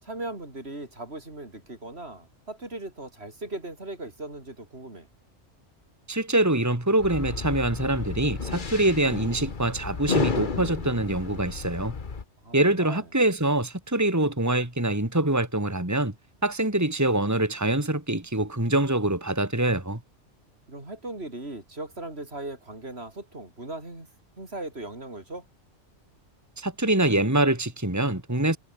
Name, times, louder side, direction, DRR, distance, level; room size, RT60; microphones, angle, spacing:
voice 1, 0.0-5.1 12.4-13.0 20.7-24.1 24.4-25.5, right 2 dB, 60° right, 4.8 m, -38 dB
voice 2, 6.1-11.9 12.5-16.1 16.4-20.0 26.6-28.6, right 1 dB, 15° right, 2.6 m, -24 dB
sound 1, 7.0-12.2, left 4 dB, 45° left, 1.6 m, -32 dB
omnidirectional pair, 1.2 m